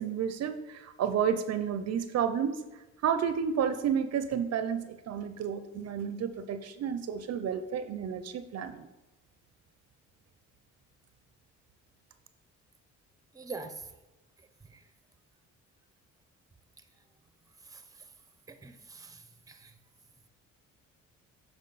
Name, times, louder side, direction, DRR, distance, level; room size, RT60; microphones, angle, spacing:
voice 1, 0.0-2.6 3.0-8.9, right 8 dB, 60° right, 10 dB, 0.5 m, -31 dB
voice 2, 13.3-13.9 14.7-14.8 17.6-17.8 18.5-19.7, right 4 dB, 10° right, 8 dB, 0.7 m, -44 dB
7.5 x 4.6 x 4.0 m, 1.0 s
cardioid pair, 90°, 30 cm